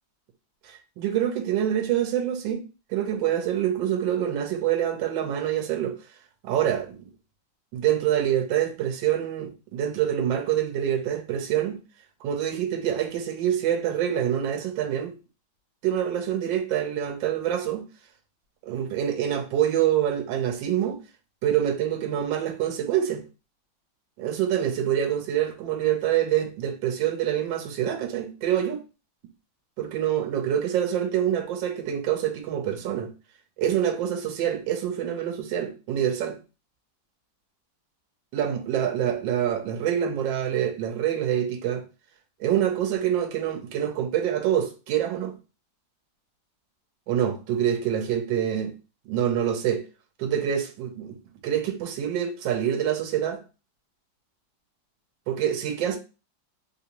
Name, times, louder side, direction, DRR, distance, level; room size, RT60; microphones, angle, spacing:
voice 1, 0.6-2.6 2.9-6.0 6.4-7.1 7.7-11.8 12.2-15.1 15.8-17.8 18.7-21.0 21.4-23.2 24.2-28.8 29.8-33.1 33.6-36.4 38.3-41.8 42.4-45.3 47.1-48.7 49.1-49.8 50.2-51.2 51.4-53.4 55.3-56.0, right 10 dB, 80° right, 1.4 m, -26 dB
3.3 x 2.6 x 2.8 m
omnidirectional pair, 2.1 m